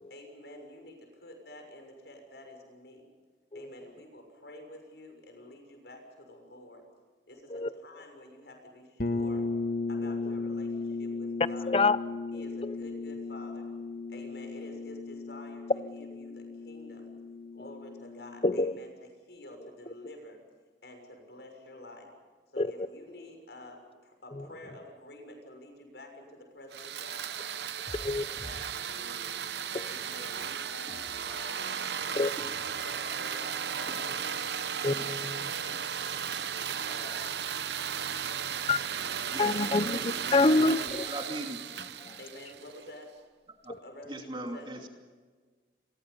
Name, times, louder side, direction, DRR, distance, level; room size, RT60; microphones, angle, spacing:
voice 1, 0.1-3.0 3.5-6.8 7.3-9.5 9.9-11.8 12.3-13.7 14.1-15.7 15.9-17.1 17.5-20.4 20.8-22.1 22.5-27.3 27.8-29.3 29.8-31.7 32.6-34.4 35.6-35.8 36.1-36.2 36.8-37.4 39.4-39.9 40.5-41.2 42.2-43.2 43.7-44.7, left 1 dB, 75° left, 4 dB, 6.5 m, -49 dB
sound 1, 9.0-18.7, left 3 dB, 50° left, 1.5 m, -36 dB
voice 2, 18.4-18.8 22.6-22.7 28.0-28.2 29.7-29.9 32.1-32.5 34.8-35.5 38.7-38.8 39.4-41.0 42.0-42.2 43.7-43.8, left 3 dB, 30° left, 15 dB, 0.7 m, -27 dB
sound 2, 26.7-42.9, right 8 dB, 75° right, 0.9 m, -35 dB
sound 3, 27.9-28.1 28.4-28.6 28.9-29.0 29.4-29.5 29.9-30.0 30.4-30.5 30.9-31.5 31.9-32.0 32.4-33.0 33.4-33.5 33.9-36.5 36.9-37.8 38.4-38.5 39.4-40.3 40.9-41.2, equal, ahead, 3.0 m, -51 dB
voice 3, 39.3-41.6 43.6-43.7 44.1-44.9, right 1 dB, 25° right, 3 dB, 2.7 m, -40 dB
29.0 x 23.0 x 5.5 m, 1.4 s
head